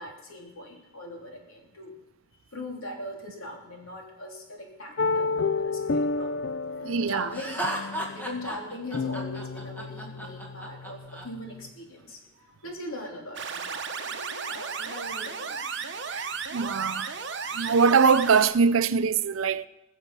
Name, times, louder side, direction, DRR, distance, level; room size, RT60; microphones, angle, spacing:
voice 1, 0.0-2.0 2.5-6.3 6.8-16.7, left 1 dB, 85° left, 3.4 m, -41 dB
sound 1, 5.0-11.7, left 4 dB, 65° left, 0.4 m, -31 dB
voice 2, 6.8-7.3 16.1-17.1 17.5-19.7, right 5 dB, 75° right, 0.5 m, -23 dB
Laughter, 7.3-11.2, right 1 dB, 10° left, 1.8 m, -34 dB
sound 2, 13.4-18.5, right 6 dB, 55° right, 0.9 m, -34 dB
21.0 x 7.1 x 5.6 m
head